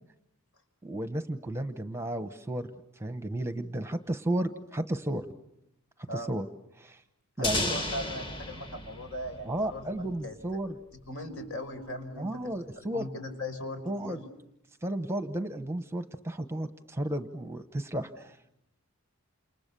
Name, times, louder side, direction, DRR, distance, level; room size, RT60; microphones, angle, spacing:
voice 1, 0.8-5.2 6.1-6.5 6.8-7.0 7.4-7.7 9.4-10.8 12.2-13.1 13.9-14.2 14.8-18.5, right 1 dB, 10° right, 9 dB, 1.0 m, -33 dB
voice 2, 7.4-10.4 11.1-14.2, left 1 dB, 65° left, 6 dB, 5.1 m, -39 dB
sound 1, 7.4-10.2, left 2 dB, 20° left, 1.8 m, -34 dB
29.5 x 28.0 x 6.9 m, 0.84 s
head